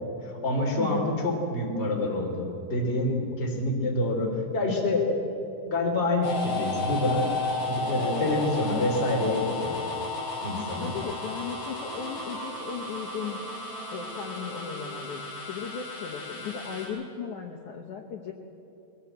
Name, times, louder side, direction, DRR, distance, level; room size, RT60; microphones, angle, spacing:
voice 1, 0.2-5.2 5.6-7.3 7.6-9.8 10.4-10.9, left 2 dB, 15° left, 0 dB, 2.6 m, -27 dB
voice 2, 0.8-1.1 10.8-13.4 13.9-18.3, left 7 dB, 85° left, -1 dB, 1.7 m, -36 dB
sound 1, 6.2-16.9, left 3 dB, 55° left, 6.2 m, -34 dB
Wind instrument woodwind instrument, 7.6-15.6, right 1 dB, 40° right, 4.6 m, -46 dB
21.0 x 17.0 x 8.1 m, 2.9 s
omnidirectional pair, 5.3 m